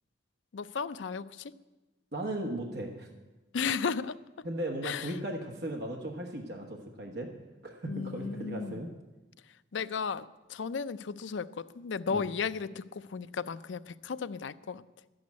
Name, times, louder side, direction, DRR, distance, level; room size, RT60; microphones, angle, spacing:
voice 1, 0.5-1.5 3.5-4.1 4.8-5.1 7.9-8.9 9.7-14.8, left 5 dB, 80° left, 14 dB, 0.5 m, -34 dB
voice 2, 2.1-3.1 4.4-7.3 7.6-8.9 12.1-12.2, right 1 dB, 60° right, 1 dB, 1.3 m, -37 dB
11.5 x 7.9 x 9.5 m, 1.1 s
head